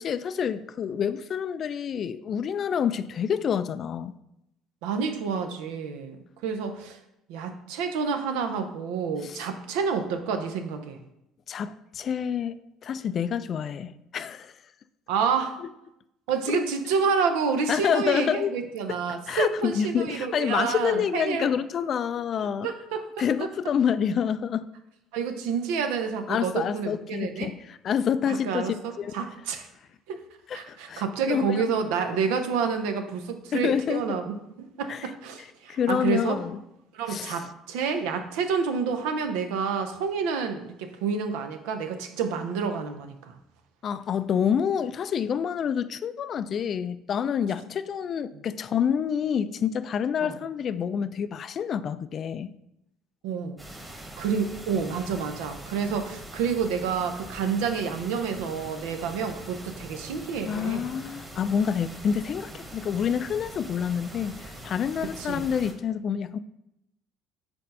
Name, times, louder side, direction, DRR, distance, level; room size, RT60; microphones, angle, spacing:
voice 1, 0.0-4.2 9.2-9.4 11.5-14.5 15.6-15.7 16.5-16.6 17.7-18.5 18.9-19.0 19.3-22.7 23.2-24.7 26.3-29.2 30.5-31.7 33.5-34.1 34.9-35.1 35.7-36.6 37.1-37.4 43.8-52.5 60.5-66.4, left 7 dB, 50° left, 14 dB, 0.3 m, -28 dB
voice 2, 4.8-7.0 7.3-11.0 15.1-15.6 16.3-21.5 22.6-23.0 25.1-27.5 28.3-29.7 30.1-30.2 30.5-36.4 36.9-43.3 50.2-50.4 53.2-53.6 54.2-60.9 65.2-65.5, right 6 dB, 80° right, 6 dB, 0.6 m, -29 dB
sound 1, 53.6-65.7, right 1 dB, 15° right, 1.5 m, -43 dB
4.4 x 4.2 x 5.3 m, 0.85 s
hypercardioid pair, 70°, 0 cm